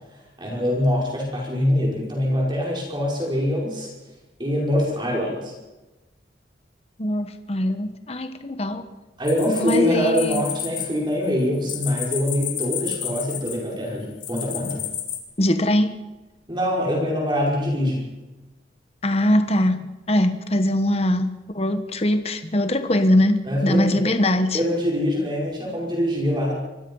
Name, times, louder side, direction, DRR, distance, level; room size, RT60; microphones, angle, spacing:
voice 1, 0.4-3.9 4.4-5.5 9.2-14.8 16.5-18.1 23.4-24.0 24.5-26.5, left 1 dB, 25° right, 5.4 m, -24 dB
voice 2, 7.0-8.9 9.6-10.4 15.4-16.0 19.0-19.8 20.1-24.6, left 1 dB, 35° left, 1.3 m, -21 dB
sound 1, 9.3-10.8 11.1-13.7 14.2-15.2, left 10 dB, 90° left, 5.1 m, -30 dB
26.0 x 20.5 x 5.6 m
head